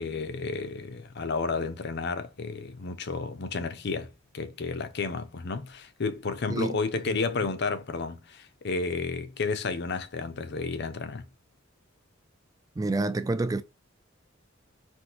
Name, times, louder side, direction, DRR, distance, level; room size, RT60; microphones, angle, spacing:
voice 1, 0.0-11.2, left 4 dB, 55° left, 0.6 m, -32 dB
voice 2, 12.8-13.6, right 2 dB, 20° right, 0.3 m, -28 dB
4.5 x 2.6 x 3.9 m
head